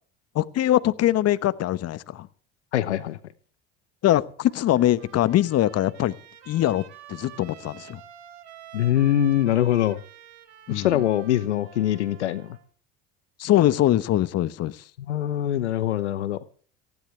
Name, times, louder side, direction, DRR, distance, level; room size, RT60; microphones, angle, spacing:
voice 1, 0.3-2.3 4.0-6.2 6.5-6.8 7.1-8.0 10.7-11.0 13.4-14.8, left 13 dB, 45° left, 15 dB, 1.1 m, -22 dB
voice 2, 2.7-3.2 8.7-10.0 10.7-12.5 15.1-16.4, left 12 dB, 85° left, 16 dB, 1.0 m, -23 dB
Trumpet, 4.5-12.7, right 11 dB, 80° right, 3.4 m, -48 dB
19.0 x 15.5 x 3.4 m, 0.42 s
hypercardioid pair, 70°, 33 cm